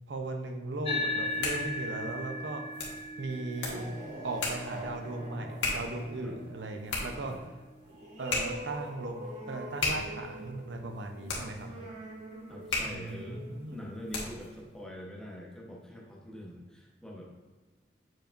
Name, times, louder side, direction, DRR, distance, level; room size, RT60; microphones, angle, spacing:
voice 1, 0.1-2.6 3.2-3.9 4.2-7.3 8.2-9.2 9.5-11.7 12.9-13.8, right 2 dB, 80° right, 4 dB, 0.7 m, -37 dB
sound 1, 0.8-9.6, left 1 dB, 30° left, 0.6 m, -39 dB
sound 2, 1.1-14.6, left 3 dB, 75° left, 1.6 m, -38 dB
sound 3, 3.4-14.6, right 1 dB, 45° right, 1.7 m, -45 dB
voice 2, 12.5-17.3, equal, 5° left, -3 dB, 1.0 m, -45 dB
7.4 x 5.1 x 2.5 m, 1.3 s
head